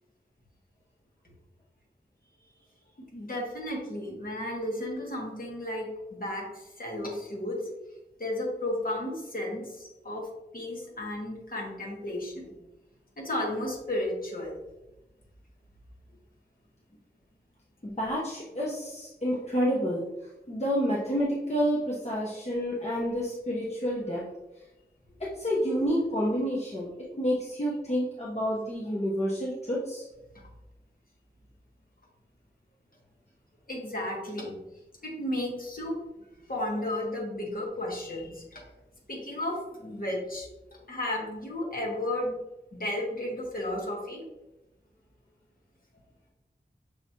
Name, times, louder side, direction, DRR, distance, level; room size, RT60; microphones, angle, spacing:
voice 1, 3.1-7.6 8.2-10.3 10.5-12.5 13.2-14.5 33.7-34.5 35.0-36.0 36.5-38.6 39.1-40.5 40.9-42.4 42.7-44.2, left 1 dB, 55° left, -2 dB, 1.4 m, -33 dB
voice 2, 17.8-20.0 20.5-24.2 25.2-26.9 27.2-30.0, equal, 40° left, -5 dB, 0.9 m, -29 dB
6.3 x 3.0 x 2.8 m, 0.99 s
wide cardioid pair, 40°, 18 cm